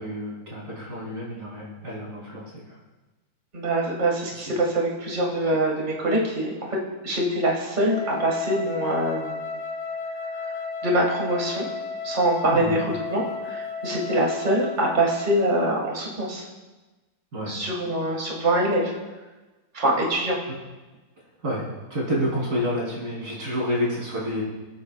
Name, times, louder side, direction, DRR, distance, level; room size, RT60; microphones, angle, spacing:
voice 1, 0.0-2.8 12.5-12.8 17.3-17.6 21.4-24.4, equal, 90° right, -6 dB, 4.3 m, -29 dB
voice 2, 3.5-6.5 7.0-9.4 10.8-11.7 12.0-16.4 17.5-18.9 19.7-20.4, right 1 dB, 30° right, -2 dB, 2.1 m, -24 dB
Wind instrument woodwind instrument, 7.8-15.5, left 4 dB, 70° left, 2.1 m, -33 dB
23.5 x 8.6 x 2.4 m, 1.2 s
omnidirectional pair, 1.7 m